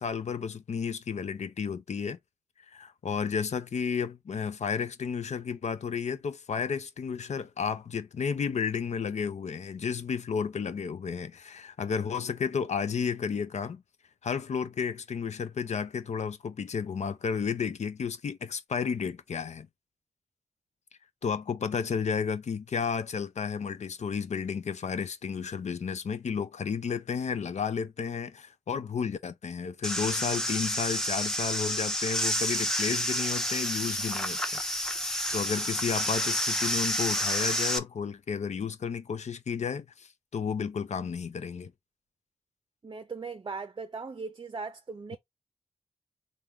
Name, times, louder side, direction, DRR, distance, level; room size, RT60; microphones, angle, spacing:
voice 1, 0.0-2.2 2.7-13.8 14.2-19.7 21.2-41.7, left 6 dB, 75° left, 0.6 m, -32 dB
sound 1, 29.8-37.8, equal, 5° left, 0.7 m, -29 dB
voice 2, 42.8-45.2, right 4 dB, 40° right, 0.5 m, -38 dB
3.5 x 2.5 x 4.4 m
cardioid pair, 60°, 12 cm